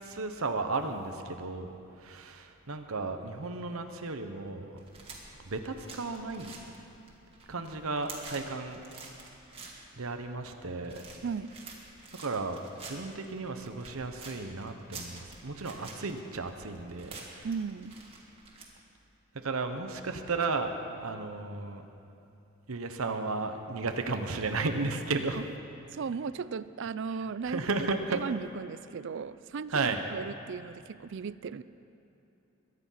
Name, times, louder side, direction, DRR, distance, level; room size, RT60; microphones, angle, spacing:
voice 1, 0.1-4.8 5.4-6.5 7.5-8.8 10.0-11.0 12.2-17.5 19.3-21.8 22.7-25.4 27.1-27.2 27.4-28.2 29.7-30.0, right 3 dB, 75° right, 6 dB, 1.0 m, -34 dB
sound 1, 4.8-18.6, right 3 dB, 25° right, 2.2 m, -49 dB
voice 2, 11.2-11.5 17.4-18.0 25.3-25.4 25.9-27.6 28.1-31.6, right 5 dB, 55° right, 16 dB, 0.4 m, -36 dB
22.5 x 9.9 x 5.8 m, 2.8 s
head